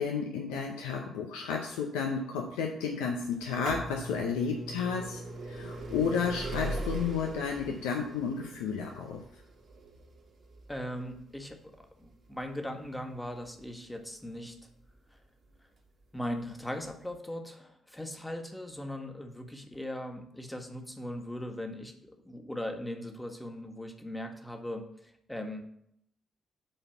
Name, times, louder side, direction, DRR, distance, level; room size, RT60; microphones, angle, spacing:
voice 1, 0.0-5.2 5.5-9.2, left 6 dB, 80° left, 2 dB, 0.7 m, -32 dB
sound 1, 3.3-15.0 15.8-15.9 16.8-16.9 17.1-17.2, right 1 dB, 60° right, 2.3 m, -41 dB
voice 2, 10.7-11.7 12.0-14.5 16.1-24.9 25.3-25.6, left 1 dB, 10° left, 4 dB, 1.6 m, -39 dB
7.6 x 4.1 x 6.9 m, 0.73 s
hypercardioid pair, 40°, 0 cm